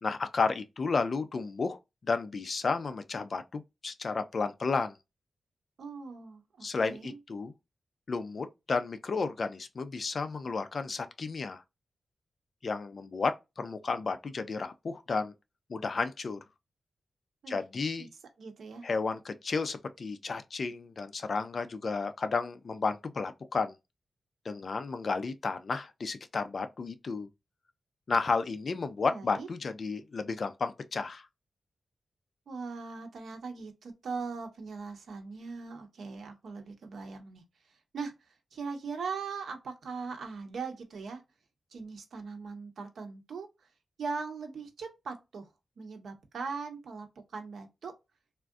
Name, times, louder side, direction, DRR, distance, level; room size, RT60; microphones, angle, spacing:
voice 1, 0.0-5.0 6.6-7.5 8.1-11.6 12.6-15.3 15.7-16.4 17.5-18.1 18.8-23.7 24.4-27.3 28.1-31.3, left 4 dB, 45° left, 0.4 m, -32 dB
voice 2, 5.8-7.2 17.4-17.6 18.0-18.1 18.4-18.8 29.1-29.5 32.5-37.4 37.9-41.2 41.7-43.5 44.0-45.5 45.8-47.1 47.3-47.9, right 4 dB, 75° right, 0.9 m, -40 dB
3.5 x 2.5 x 2.3 m
wide cardioid pair, 180°, 0 cm